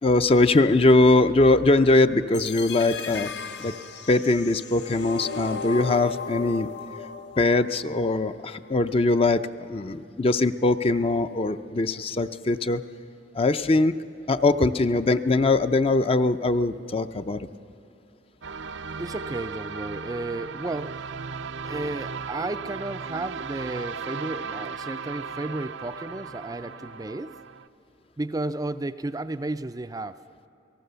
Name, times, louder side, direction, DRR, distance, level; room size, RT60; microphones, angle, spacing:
voice 1, 0.0-3.3 3.6-3.7 4.1-6.7 7.4-9.4 9.7-12.8 13.3-14.0 14.3-17.5, left 2 dB, 30° left, 10 dB, 0.6 m, -21 dB
sound 1, 2.3-8.3, left 5 dB, 70° left, 1.1 m, -36 dB
sound 2, 18.4-27.7, right 5 dB, 80° right, 0.6 m, -36 dB
voice 2, 19.0-21.0 21.6-27.4 28.2-30.2, right 2 dB, 20° right, 10 dB, 0.4 m, -33 dB
28.5 x 18.5 x 6.8 m, 2.9 s
head